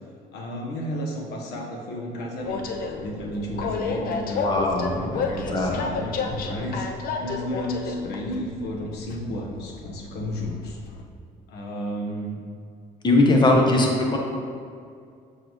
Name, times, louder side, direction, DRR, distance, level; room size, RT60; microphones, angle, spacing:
voice 1, 0.3-4.7 5.0-10.8 11.5-12.4 13.3-13.9, equal, 85° left, 1 dB, 1.2 m, -33 dB
Train, 2.4-11.0, left 4 dB, 60° left, 0.7 m, -32 dB
voice 2, 4.4-5.8 13.0-14.2, left 2 dB, 25° left, 0 dB, 1.1 m, -20 dB
7.4 x 6.0 x 3.1 m, 2.3 s
cardioid pair, 110°, 17 cm